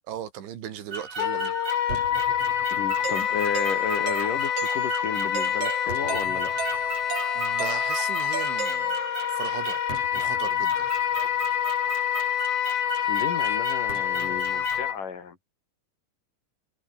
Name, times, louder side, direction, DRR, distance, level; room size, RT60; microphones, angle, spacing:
voice 1, 0.1-1.6 7.0-8.9 9.3-9.8 10.1-10.9, right 10 dB, 80° right, 4.9 m, -37 dB
sound 1, 0.9-14.9, right 3 dB, 35° right, 7.2 m, -37 dB
Wind instrument woodwind instrument, 1.2-15.0, left 10 dB, 70° left, 4.5 m, -27 dB
voice 2, 2.7-6.5 13.1-15.4, left 6 dB, 50° left, 4.1 m, -33 dB
Doorbell, 3.0-9.4, right 9 dB, 65° right, 1.5 m, -37 dB
omnidirectional pair, 5.3 m